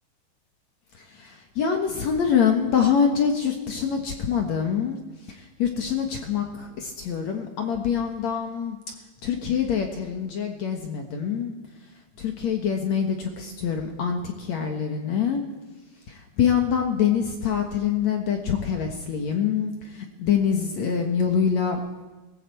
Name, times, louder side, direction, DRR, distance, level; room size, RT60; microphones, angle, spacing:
voice 1, 0.9-5.0 5.3-8.8 9.2-11.5 12.2-15.5 16.1-21.8, left 7 dB, 70° left, 3 dB, 1.7 m, -25 dB
19.5 x 18.5 x 7.8 m, 1.2 s
omnidirectional pair, 5.4 m